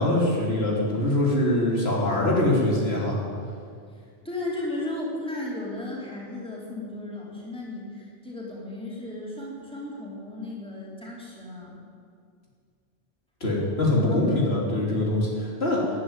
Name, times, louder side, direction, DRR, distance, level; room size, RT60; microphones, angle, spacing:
voice 1, 0.0-3.2 13.4-15.8, left 1 dB, 70° left, -3 dB, 3.3 m, -23 dB
voice 2, 3.9-11.8 14.1-14.2, left 2 dB, 5° left, -5 dB, 3.8 m, -35 dB
13.0 x 11.5 x 9.2 m, 2.2 s
omnidirectional pair, 1.1 m